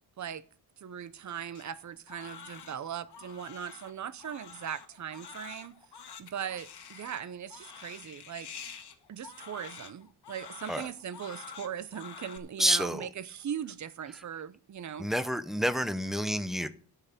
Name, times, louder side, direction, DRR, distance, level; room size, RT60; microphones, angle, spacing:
voice 1, 0.8-5.8 6.2-8.5 9.1-15.1, right 9 dB, 45° right, 0.7 m, -39 dB
Crying sobbing, 1.5-12.4, left 7 dB, 75° left, 1.5 m, -48 dB
voice 2, 12.6-13.1 15.0-16.7, equal, ahead, 0.6 m, -29 dB
12.0 x 5.9 x 7.0 m
wide cardioid pair, 150°, 40 cm